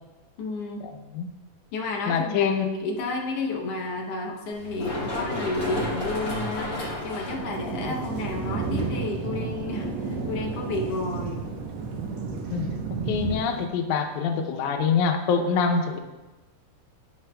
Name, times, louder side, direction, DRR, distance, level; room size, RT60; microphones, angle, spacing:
voice 1, 0.4-0.9 1.7-6.7 7.0-11.4, left 3 dB, 70° left, 0 dB, 1.7 m, -31 dB
voice 2, 2.1-2.7 7.9-8.0 12.5-12.7 13.1-16.0, left 5 dB, 90° left, 6 dB, 2.1 m, -25 dB
Run, 4.5-12.1, left 1 dB, 40° left, 2.9 m, -34 dB
Thunder, 7.3-13.7, right 4 dB, 75° right, 1.9 m, -32 dB
12.0 x 6.0 x 2.2 m, 1.1 s
omnidirectional pair, 3.3 m